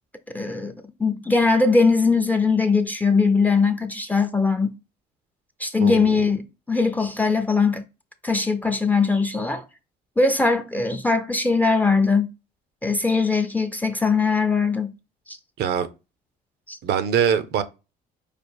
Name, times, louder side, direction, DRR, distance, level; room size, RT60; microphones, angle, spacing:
voice 1, 0.3-0.7 1.0-4.7 5.6-7.8 8.2-9.6 10.2-12.3 12.8-14.9 15.3-15.4 16.7-16.8, left 4 dB, 10° left, 0.5 m, -21 dB
voice 2, 5.8-6.2 15.6-15.9 16.8-17.6, right 8 dB, 75° right, 0.7 m, -23 dB
5.0 x 2.4 x 4.5 m
cardioid pair, 110°, 17 cm